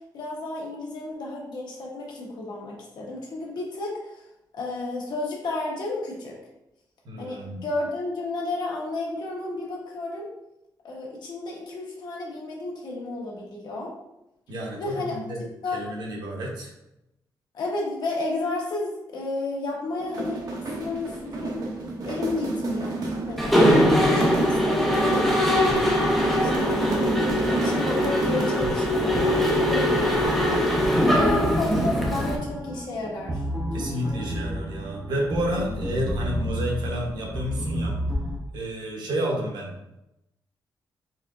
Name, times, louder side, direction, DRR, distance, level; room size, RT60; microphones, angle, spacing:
voice 1, 0.1-3.9 4.5-6.4 7.2-10.3 10.8-13.9 14.8-15.2 15.6-15.8 17.5-21.6 22.1-23.0 23.3-23.6 24.0-25.5 26.2-30.4 31.0-33.4, left 2 dB, 70° left, -2 dB, 1.2 m, -32 dB
voice 2, 7.0-7.6 14.5-15.4 15.7-16.7 31.0-31.3 31.6-31.7 33.7-38.0 38.5-39.7, equal, 75° right, -1 dB, 1.1 m, -30 dB
sound 1, 20.0-28.7, right 2 dB, 60° right, 0.8 m, -30 dB
Mechanisms, 23.4-32.4, equal, ahead, 0.6 m, -22 dB
sound 2, 30.2-38.4, equal, 20° right, 0.9 m, -31 dB
4.2 x 3.6 x 2.5 m, 0.88 s
wide cardioid pair, 170°, 7 cm